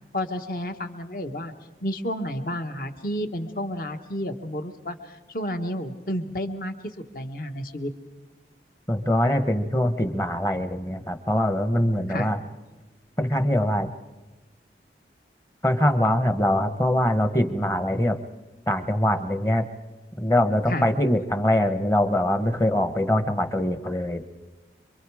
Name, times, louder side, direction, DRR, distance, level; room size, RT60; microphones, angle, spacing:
voice 1, 0.1-1.5 1.8-6.7 7.1-7.9 12.1-12.3 20.7-20.9, equal, 50° left, 7 dB, 1.4 m, -31 dB
voice 2, 8.9-12.4 13.2-13.9 15.6-18.2 18.7-19.7 20.2-24.2, left 1 dB, 15° left, 9 dB, 1.0 m, -23 dB
26.5 x 24.0 x 4.9 m, 1.2 s
head